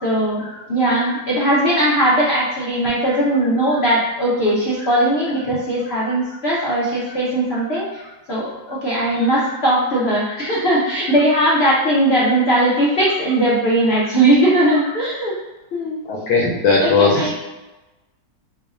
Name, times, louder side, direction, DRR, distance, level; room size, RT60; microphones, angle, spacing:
voice 1, 0.0-8.0 8.3-15.3 15.7-16.0 16.8-17.3, right 1 dB, 90° left, -7 dB, 0.5 m, -19 dB
voice 2, 16.0-17.3, left 4 dB, 70° left, -4 dB, 0.9 m, -18 dB
5.4 x 2.1 x 2.4 m, 1.1 s
omnidirectional pair, 2.0 m